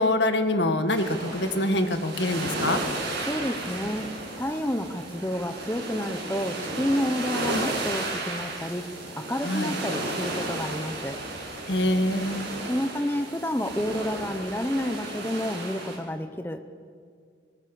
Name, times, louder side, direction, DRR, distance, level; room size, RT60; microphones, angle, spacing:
voice 1, 0.0-2.8 9.4-9.8 11.7-12.5, left 1 dB, 75° left, 7 dB, 1.7 m, -25 dB
sound 1, 0.9-16.0, right 2 dB, 75° right, 7.2 m, -33 dB
voice 2, 3.2-8.9 9.2-11.2 12.7-16.6, equal, 10° left, 7 dB, 0.9 m, -30 dB
26.0 x 19.0 x 7.1 m, 2.1 s
head